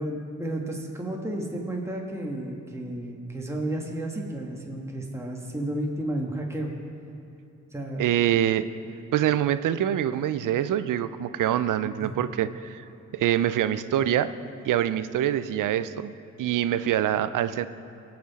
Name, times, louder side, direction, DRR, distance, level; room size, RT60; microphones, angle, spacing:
voice 1, 0.0-6.7 7.7-8.2 12.0-12.2, right 1 dB, 10° right, -1 dB, 1.5 m, -32 dB
voice 2, 8.0-8.7 9.1-12.8 13.1-14.3 14.6-16.1 16.4-17.7, right 11 dB, 75° right, 14 dB, 0.5 m, -25 dB
17.5 x 6.0 x 4.1 m, 2.7 s
supercardioid pair, 45°, 32 cm